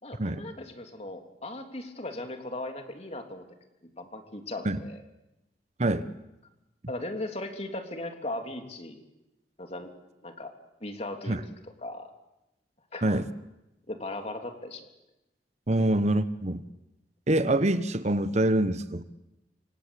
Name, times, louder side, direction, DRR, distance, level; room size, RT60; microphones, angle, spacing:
voice 1, 0.0-3.4 3.8-5.0 6.9-9.1 9.6-9.9 10.2-10.5 10.8-11.4 11.6-12.1 12.9-13.2 13.9-14.9 15.8-15.9, left 2 dB, 35° left, 5 dB, 3.2 m, -38 dB
voice 2, 15.7-16.6 17.3-19.0, right 1 dB, 40° right, 12 dB, 1.0 m, -25 dB
26.5 x 25.5 x 8.4 m, 0.94 s
head